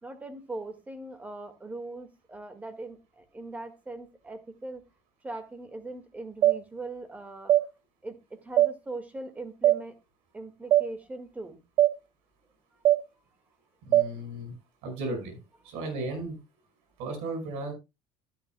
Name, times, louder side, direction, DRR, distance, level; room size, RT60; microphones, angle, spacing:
voice 1, 0.0-4.8 5.2-7.6 8.0-10.0 10.3-11.6, right 2 dB, 15° right, 1.8 m, -40 dB
sound 1, 6.4-6.6 7.5-7.6 8.6-8.7 9.6-9.8 10.7-10.9 11.8-11.9 12.8-13.0 13.9-14.1, right 13 dB, 45° right, 0.6 m, -20 dB
voice 2, 13.9-14.5 14.8-15.4 15.6-16.4 17.0-17.7, right 2 dB, 80° right, 5.3 m, -35 dB
13.5 x 10.0 x 2.2 m
cardioid pair, 135°, 11 cm